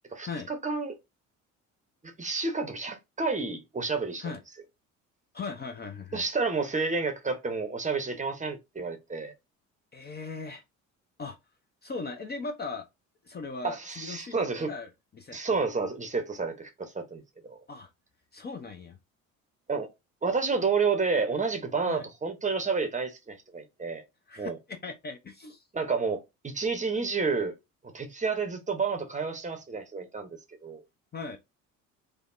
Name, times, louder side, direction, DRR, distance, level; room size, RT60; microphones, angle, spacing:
voice 1, 0.1-1.0 2.0-4.3 6.1-9.3 13.6-14.7 15.3-17.6 19.7-19.9 20.2-24.0 24.4-24.6 25.7-27.6 27.9-30.3 30.6-30.8, right 4 dB, 20° right, 0.8 m, -30 dB
voice 2, 5.3-6.2 9.9-10.6 11.2-11.4 11.8-12.9 13.2-14.9 15.1-15.4 17.7-17.9 18.3-19.0 21.9-22.1 24.3-25.6 31.1-31.4, left 4 dB, 25° left, 0.6 m, -38 dB
3.4 x 2.0 x 2.5 m
hypercardioid pair, 55°, 41 cm